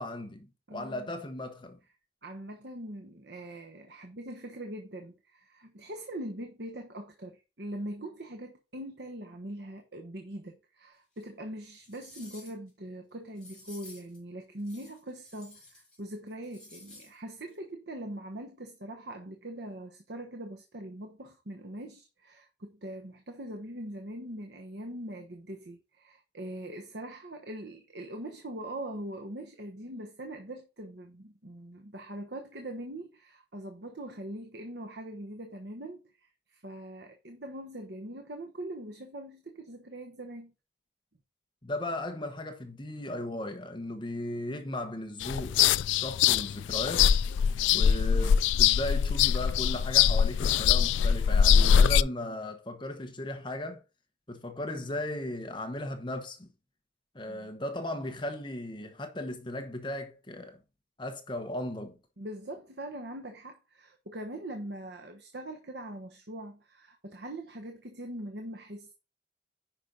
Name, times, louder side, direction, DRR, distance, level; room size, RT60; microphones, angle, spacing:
voice 1, 0.0-1.8 41.6-45.6 45.9-47.1 47.7-53.8 54.3-56.5 57.1-60.6 61.0-62.0, left 1 dB, 25° left, 1.0 m, -36 dB
voice 2, 0.7-1.1 2.2-40.5 57.3-57.5 62.2-68.9, right 1 dB, 65° right, 1.1 m, -42 dB
sound 1, 11.2-11.3 11.7-12.7 13.3-14.2 14.6-16.0 16.3-17.1 17.5-17.6, left 2 dB, 5° left, 3.9 m, -52 dB
sound 2, 45.2-52.0, left 8 dB, 85° left, 0.3 m, -23 dB
10.0 x 5.3 x 4.0 m
head